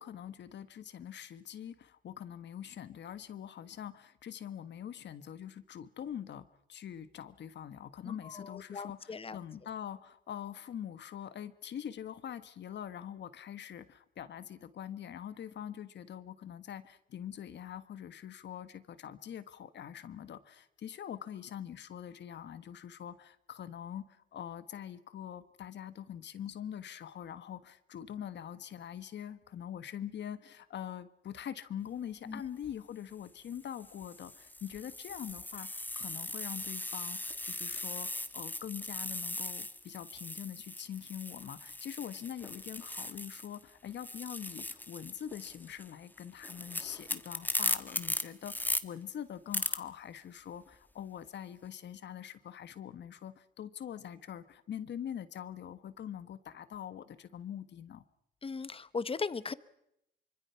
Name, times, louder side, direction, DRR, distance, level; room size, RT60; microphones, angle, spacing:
voice 1, 0.0-35.7 35.9-58.0, left 9 dB, 65° left, 13 dB, 1.5 m, -44 dB
voice 2, 8.0-9.4 32.3-32.4 58.4-59.5, left 4 dB, 30° left, 16 dB, 1.1 m, -38 dB
sound 1, 32.5-32.7 33.5-43.6 43.9-48.8 49.5-49.8, left 1 dB, 10° left, 1.3 m, -38 dB
25.0 x 25.0 x 5.8 m, 0.81 s
cardioid pair, 90°, 20 cm